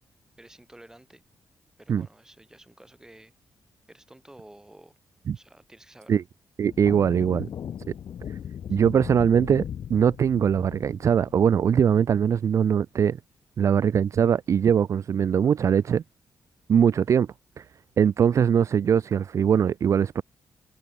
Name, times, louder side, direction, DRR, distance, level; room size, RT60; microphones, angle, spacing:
voice 1, 0.4-1.2 1.8-3.3 3.9-4.9 5.3-6.1 8.7-8.8, right 1 dB, 10° right, 5.1 m, -51 dB
sound 1, 6.6-12.2, left 9 dB, 60° left, 0.6 m, -38 dB
voice 2, 6.6-7.5 8.3-8.4 8.7-9.6 9.9-13.2 13.6-16.0 16.7-17.3 17.6-17.7 18.0-20.2, right 8 dB, 45° right, 0.3 m, -21 dB
wide cardioid pair, 140°, 7 cm